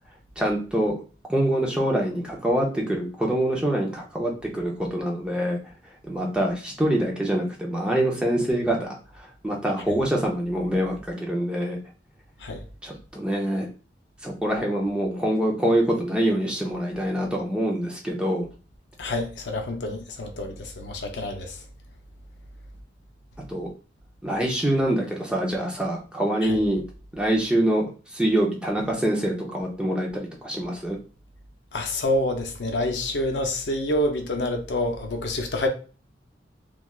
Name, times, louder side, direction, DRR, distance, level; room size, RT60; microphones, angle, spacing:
voice 1, 0.4-1.0 1.3-5.6 6.0-11.8 12.8-13.7 14.2-18.5 23.5-23.7 24.2-26.8 27.1-31.0, right 1 dB, 5° right, 0.6 m, -25 dB
voice 2, 19.0-21.6 26.4-26.6 31.7-35.7, left 1 dB, 75° left, 0.6 m, -27 dB
3.2 x 2.3 x 2.3 m
head